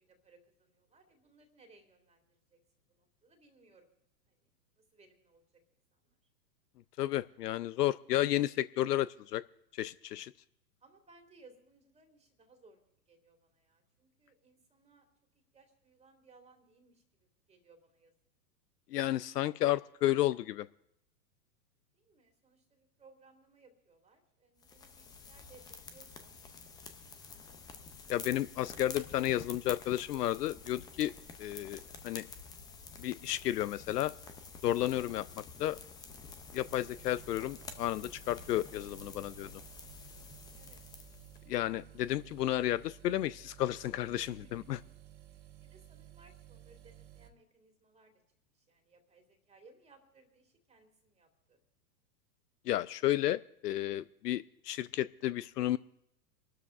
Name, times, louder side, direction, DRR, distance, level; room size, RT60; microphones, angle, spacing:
voice 1, 0.0-2.6 2.9-4.0 4.3-4.5 4.8-5.4 5.9-6.2 10.8-12.8 13.1-15.1 15.5-17.0 17.5-18.1 21.9-26.4 40.5-41.2 41.4-41.6 44.3-44.7 45.2-48.1 48.5-51.6, right 3 dB, 15° right, 4 dB, 2.1 m, -63 dB
voice 2, 7.0-9.4 9.8-10.3 18.9-20.7 28.1-31.1 31.4-32.3 33.0-34.1 34.6-35.8 36.5-39.5 41.5-44.8 52.7-55.8, left 14 dB, 75° left, 17 dB, 0.6 m, -32 dB
sound 1, 24.6-41.4, left 5 dB, 10° left, 0.4 m, -49 dB
sound 2, 36.6-47.3, right 13 dB, 80° right, 1.9 m, -55 dB
28.0 x 12.5 x 2.5 m, 0.78 s
hypercardioid pair, 115°, 49 cm